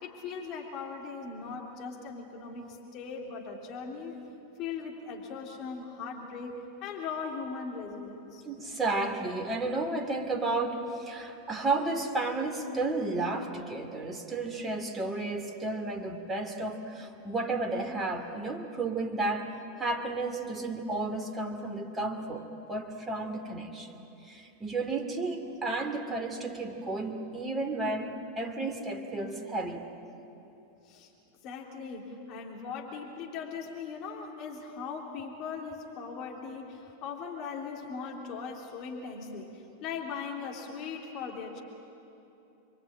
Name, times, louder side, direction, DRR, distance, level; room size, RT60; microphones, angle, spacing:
voice 1, 0.0-4.2 4.6-8.4 30.9-31.1 31.4-41.6, left 5 dB, 40° left, 0 dB, 3.3 m, -39 dB
voice 2, 8.4-19.5 19.8-29.9, right 2 dB, 15° right, 5 dB, 2.5 m, -32 dB
28.0 x 23.0 x 8.9 m, 2.9 s
figure-of-eight pair, 90°, 0 cm